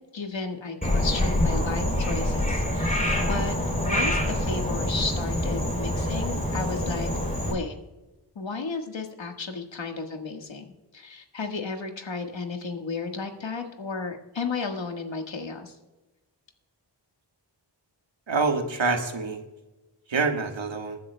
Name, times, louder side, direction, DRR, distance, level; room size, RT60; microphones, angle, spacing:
voice 1, 0.1-7.1 7.4-7.7 8.3-15.7, left 4 dB, 80° left, 4 dB, 1.6 m, -33 dB
Frog, 0.8-7.5, left 1 dB, 20° left, 3.2 m, -26 dB
voice 2, 18.3-19.4 20.1-21.0, right 4 dB, 90° right, 5 dB, 1.4 m, -26 dB
22.0 x 10.5 x 2.2 m, 1.1 s
wide cardioid pair, 55°, 44 cm